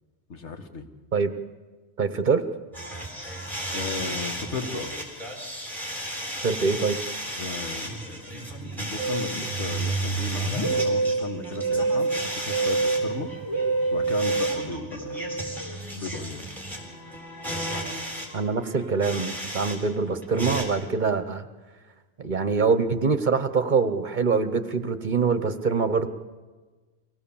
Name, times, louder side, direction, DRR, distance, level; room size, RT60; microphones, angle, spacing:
voice 1, 0.3-0.9 3.7-4.9 7.4-8.0 8.3-13.3 13.9-15.4 15.9-16.4, left 4 dB, 80° left, 5 dB, 1.8 m, -35 dB
voice 2, 2.0-2.4 6.4-7.0 18.3-21.5 22.2-26.1, right 5 dB, 45° right, 10 dB, 1.1 m, -24 dB
sound 1, 2.7-19.8 20.0-20.6, equal, ahead, 4.0 m, -35 dB
Musical instrument, 9.0-15.8, right 3 dB, 25° left, 3.3 m, -27 dB
24.0 x 17.0 x 7.1 m, 1.3 s
omnidirectional pair, 1.2 m